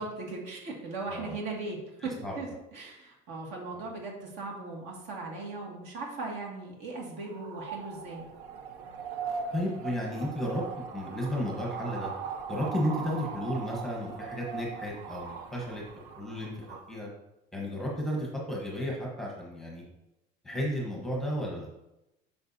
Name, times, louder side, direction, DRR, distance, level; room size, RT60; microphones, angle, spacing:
voice 1, 0.0-8.2, right 3 dB, 60° right, -1 dB, 2.0 m, -38 dB
sound 1, 7.2-16.9, right 5 dB, 85° right, 0.9 m, -40 dB
voice 2, 9.5-10.6 10.9-12.1 12.5-17.1 17.5-19.8 20.4-21.7, equal, ahead, -3 dB, 1.1 m, -33 dB
8.9 x 5.6 x 2.7 m, 0.91 s
cardioid pair, 165°, 20 cm